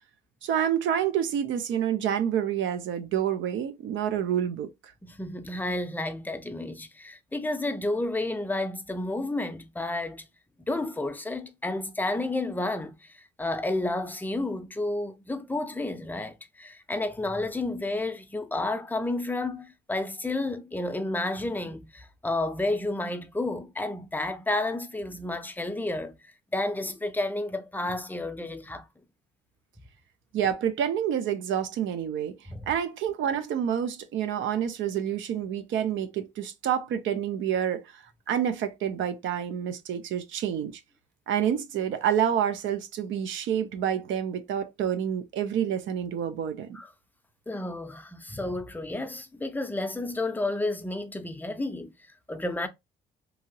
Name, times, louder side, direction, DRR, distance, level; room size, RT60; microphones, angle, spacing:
voice 1, 0.4-4.9 30.3-32.4 32.7-40.8 41.3-46.8, right 9 dB, 75° right, 0.5 m, -28 dB
voice 2, 5.0-10.3 10.7-12.9 13.4-26.2 26.5-28.9 32.5-32.7 46.7-46.9 47.5-51.9 52.3-52.7, left 2 dB, 10° left, 0.5 m, -31 dB
2.8 x 2.7 x 2.7 m
cardioid pair, 90°, 20 cm